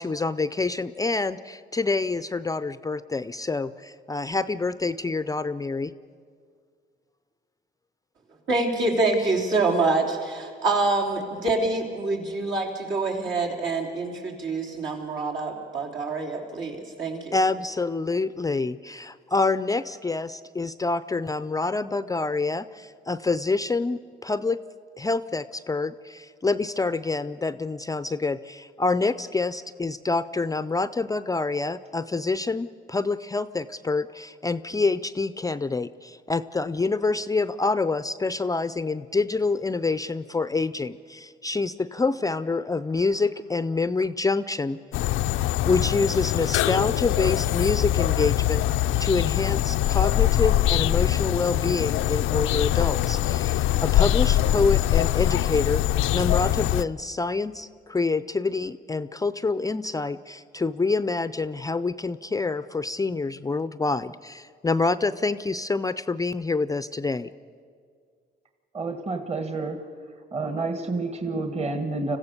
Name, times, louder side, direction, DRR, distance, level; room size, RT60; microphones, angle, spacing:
voice 1, 0.0-5.9 17.3-24.6 25.0-44.8 45.7-48.7 49.0-55.8 56.1-67.3, left 3 dB, 15° left, 14 dB, 0.4 m, -27 dB
voice 2, 8.5-17.4, right 3 dB, 70° right, -1 dB, 3.7 m, -26 dB
sound 1, 44.9-56.8, left 13 dB, 85° left, 0.5 m, -23 dB
voice 3, 68.7-69.8 70.3-72.2, right 3 dB, 30° right, 7 dB, 1.5 m, -29 dB
26.5 x 15.0 x 6.7 m, 2.1 s
cardioid pair, 90°, 20 cm